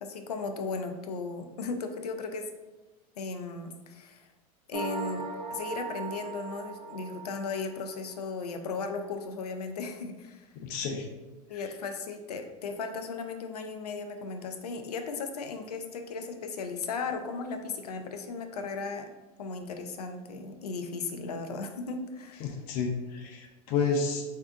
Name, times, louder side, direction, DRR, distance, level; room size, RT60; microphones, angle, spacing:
voice 1, 0.0-2.5 3.2-4.3 4.7-5.2 5.5-10.5 11.5-19.1 19.4-22.5, left 4 dB, 90° left, 6 dB, 0.5 m, -36 dB
sound 1, 4.7-8.1, right 3 dB, 30° right, 1.0 m, -38 dB
voice 2, 10.5-11.1 11.5-11.6 22.4-24.2, left 5 dB, 55° left, 2 dB, 0.7 m, -31 dB
3.4 x 2.7 x 3.6 m, 1.1 s
hypercardioid pair, 100°, 19 cm